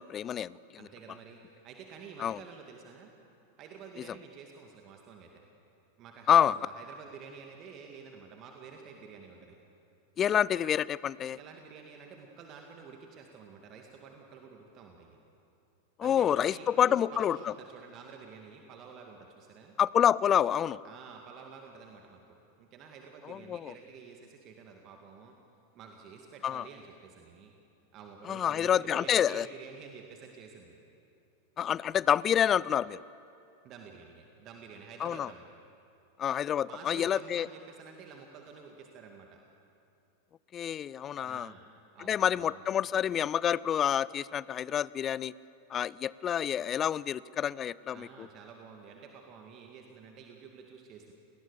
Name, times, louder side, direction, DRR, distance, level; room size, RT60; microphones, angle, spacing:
voice 1, 0.0-0.6 2.2-2.4 6.3-6.6 10.2-11.4 16.0-17.5 19.8-20.8 23.3-23.7 26.4-26.6 28.3-29.5 31.6-33.0 35.0-35.3 36.2-37.5 40.5-41.5 42.0-45.3 45.7-48.3, left 9 dB, 25° left, 21 dB, 0.5 m, -28 dB
voice 2, 0.8-3.1 3.6-5.4 6.0-9.6 11.3-15.2 16.0-19.8 20.8-25.3 25.7-27.5 27.9-30.8 33.6-35.5 36.6-39.4 41.2-41.6 41.9-42.8 47.9-51.1, right 5 dB, 35° right, 2 dB, 2.2 m, -50 dB
29.5 x 19.5 x 7.0 m, 2.8 s
figure-of-eight pair, 90°, 0 cm